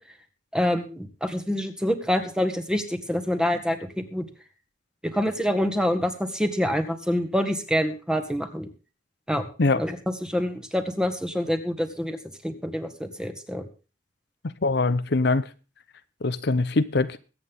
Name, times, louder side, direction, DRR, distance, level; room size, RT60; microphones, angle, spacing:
voice 1, 0.5-4.2 5.1-8.7 9.3-9.5 9.8-10.0 10.2-12.2 12.4-13.7, equal, 5° right, 1.8 m, -26 dB
voice 2, 14.6-15.5 16.2-17.2, left 3 dB, 65° left, 0.8 m, -22 dB
22.0 x 9.0 x 3.6 m
head